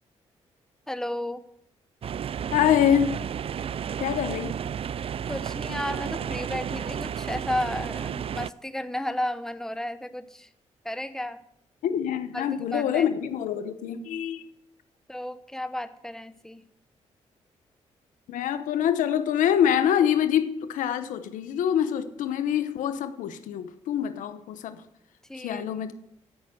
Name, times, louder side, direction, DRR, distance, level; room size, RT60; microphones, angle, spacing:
voice 1, 0.9-1.4 5.3-10.5 10.8-11.4 12.3-13.1 15.1-16.6 25.3-25.8, left 1 dB, 5° left, 12 dB, 1.0 m, -33 dB
sound 1, 2.0-8.5, right 8 dB, 45° right, 0.4 m, -32 dB
voice 2, 2.5-3.2 4.0-4.6 5.7-5.8 11.8-14.4 18.3-24.8 25.3-25.9, left 9 dB, 85° left, 11 dB, 0.9 m, -25 dB
14.5 x 5.7 x 7.7 m, 0.77 s
supercardioid pair, 55°, 13 cm